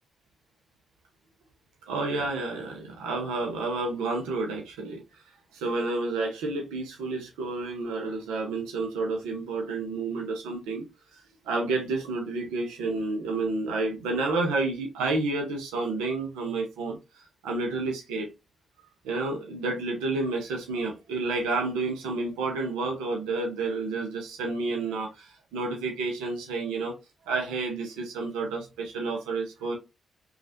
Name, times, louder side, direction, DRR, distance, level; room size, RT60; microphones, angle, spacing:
voice 1, 1.9-5.0 5.5-10.9 11.5-18.3 19.0-26.9 27.3-29.8, right 3 dB, 85° right, 0.6 m, -30 dB
3.1 x 2.4 x 2.6 m
hypercardioid pair, 40°, 0 cm